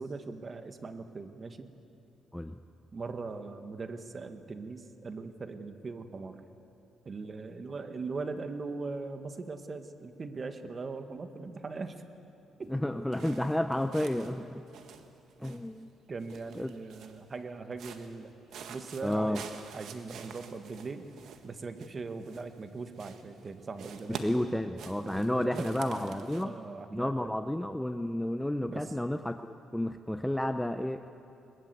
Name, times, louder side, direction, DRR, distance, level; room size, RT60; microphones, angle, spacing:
voice 1, 0.0-1.7 2.9-6.4 7.0-12.0 12.6-12.7 16.1-18.4 18.7-19.4 19.7-21.1 21.4-24.4 25.0-27.3 28.6-28.9, right 4 dB, 35° right, 8 dB, 1.7 m, -40 dB
voice 2, 12.7-14.6 15.4-15.9 16.6-16.7 19.0-19.4 24.1-26.5 26.9-31.1, left 1 dB, 5° left, 8 dB, 0.7 m, -31 dB
sound 1, 13.1-14.4 14.7-15.8 16.2-17.3 17.7-18.2 18.5-22.7 22.9-23.5 23.8-26.4, right 6 dB, 75° right, 1.5 m, -47 dB
21.5 x 21.0 x 8.3 m, 2.9 s
cardioid pair, 90°, 0 cm